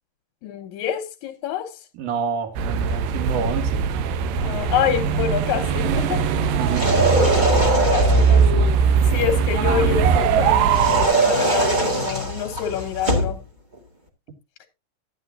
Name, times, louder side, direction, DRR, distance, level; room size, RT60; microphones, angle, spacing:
voice 1, 0.4-1.7 4.4-6.2 7.9-8.7 9.1-13.4, left 9 dB, 70° left, 2.0 m, -26 dB
voice 2, 2.0-3.8 6.6-6.9, right 6 dB, 55° right, 2.5 m, -28 dB
sound 1, 2.6-11.1, right 5 dB, 75° right, 2.5 m, -20 dB
sound 2, 6.6-8.5 10.7-13.4, right 2 dB, 25° right, 1.0 m, -21 dB
12.5 x 9.7 x 2.6 m
omnidirectional pair, 4.1 m